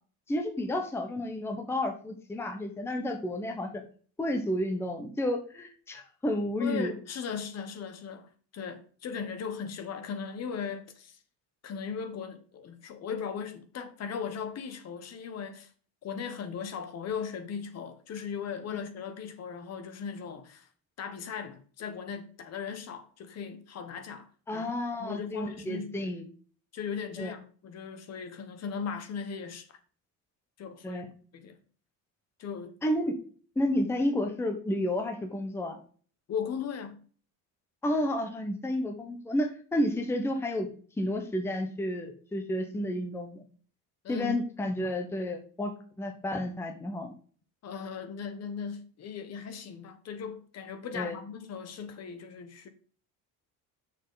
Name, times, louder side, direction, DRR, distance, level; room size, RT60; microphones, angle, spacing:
voice 1, 0.3-3.7 4.2-6.9 18.7-18.8 24.5-26.3 27.2-27.3 30.8-31.1 32.8-33.1 33.6-35.8 37.8-40.7 41.0-43.4 44.1-45.7 46.0-47.1 50.9-51.2, left 1 dB, 5° left, 0.8 m, -31 dB
voice 2, 6.6-11.2 11.6-15.7 16.0-20.7 21.0-24.3 24.5-24.7 25.0-26.1 26.7-29.7 30.6-31.0 31.3-31.6 32.4-32.7 36.3-37.0 44.0-44.4 47.6-52.7, left 6 dB, 40° left, 1.0 m, -38 dB
7.3 x 6.6 x 3.9 m
cardioid pair, 165°, 38 cm